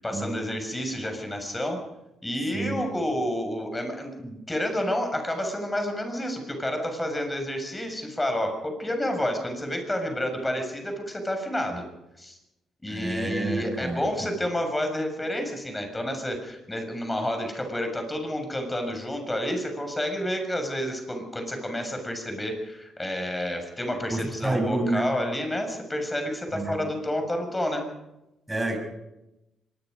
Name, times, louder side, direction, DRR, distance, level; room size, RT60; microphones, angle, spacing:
voice 1, 0.0-1.8 2.2-11.8 12.2-12.4 12.8-27.9, left 1 dB, 15° left, 5 dB, 7.0 m, -30 dB
voice 2, 12.9-14.1 24.1-25.1 26.5-26.7 28.5-28.8, right 2 dB, 15° right, 4 dB, 6.7 m, -29 dB
25.0 x 21.5 x 5.4 m, 0.93 s
cardioid pair, 90°, 0 cm